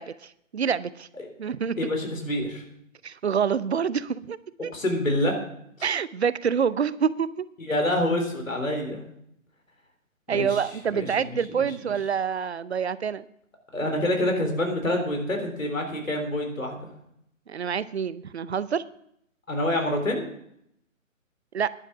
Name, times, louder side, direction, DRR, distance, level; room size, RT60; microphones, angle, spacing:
voice 1, 0.0-1.1 1.4-1.8 3.0-4.4 4.6-4.7 5.8-7.5 10.3-13.2 17.5-18.8 21.5-21.7, right 7 dB, 55° right, 17 dB, 0.7 m, -27 dB
voice 2, 1.8-2.6 4.7-5.4 7.7-9.0 10.3-10.6 10.9-11.7 13.7-16.9 19.5-20.3, left 1 dB, 75° left, 3 dB, 3.8 m, -27 dB
11.0 x 10.5 x 6.1 m, 0.73 s
figure-of-eight pair, 140°, 40 cm